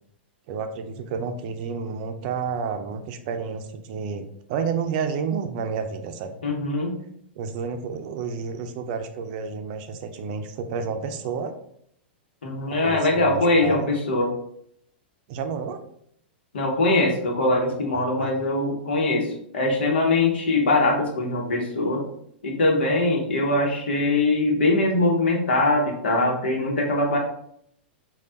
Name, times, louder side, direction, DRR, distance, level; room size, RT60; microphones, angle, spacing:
voice 1, 0.5-6.4 7.4-11.5 12.7-13.9 15.3-15.8 17.9-18.3, right 5 dB, 50° right, 7 dB, 0.5 m, -30 dB
voice 2, 6.4-7.0 12.4-14.3 16.5-22.0 22.4-27.2, left 2 dB, 75° left, 1 dB, 1.0 m, -22 dB
3.3 x 2.3 x 3.8 m, 0.70 s
hypercardioid pair, 115°, 6 cm